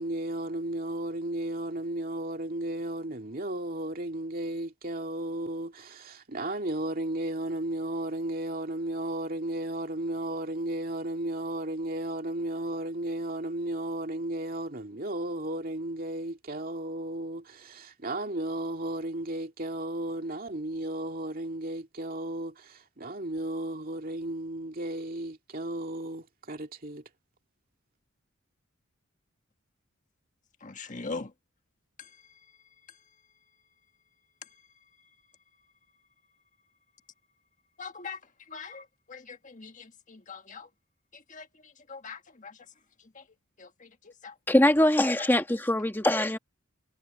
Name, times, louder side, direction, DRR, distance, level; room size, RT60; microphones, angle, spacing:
voice 1, 0.0-27.0, right 1 dB, 40° right, 2.5 m, -34 dB
voice 2, 30.6-31.3 32.0-32.1 37.8-38.2 38.5-40.7 41.3-41.5 41.9-42.6 43.1-43.2 43.6-44.3, left 4 dB, 35° left, 1.7 m, -42 dB
voice 3, 44.5-46.4, left 1 dB, 10° left, 1.6 m, -22 dB
head